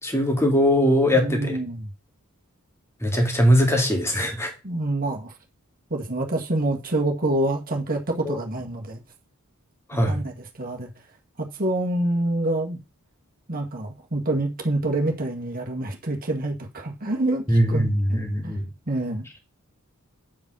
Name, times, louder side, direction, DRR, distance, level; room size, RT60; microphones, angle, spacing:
voice 1, 0.0-1.6 3.0-4.5 8.2-8.4 9.9-10.2 17.5-18.7, equal, 10° left, 2.3 m, -21 dB
voice 2, 1.1-1.9 4.6-5.3 5.9-9.0 10.1-10.9 11.4-12.8 13.5-17.8 18.1-18.6 18.9-19.3, right 1 dB, 40° right, 1.9 m, -27 dB
8.9 x 5.5 x 6.2 m
head